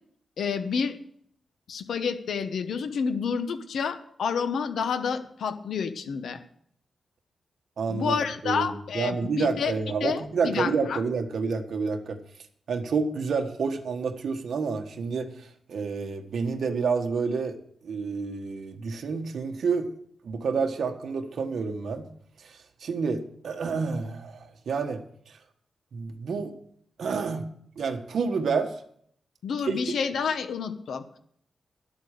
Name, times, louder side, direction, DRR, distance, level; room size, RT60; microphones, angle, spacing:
voice 1, 0.4-1.0 1.7-6.4 7.9-9.7 10.0-11.0 29.4-31.0, left 6 dB, 75° left, 9 dB, 1.2 m, -29 dB
voice 2, 7.8-8.2 8.4-12.2 12.7-17.6 17.8-19.9 20.2-22.1 22.4-25.4 25.9-26.5 27.0-27.5 27.8-28.8 29.6-29.7, right 5 dB, 60° right, 5 dB, 1.3 m, -29 dB
12.0 x 8.2 x 6.6 m, 0.64 s
wide cardioid pair, 175°, 0 cm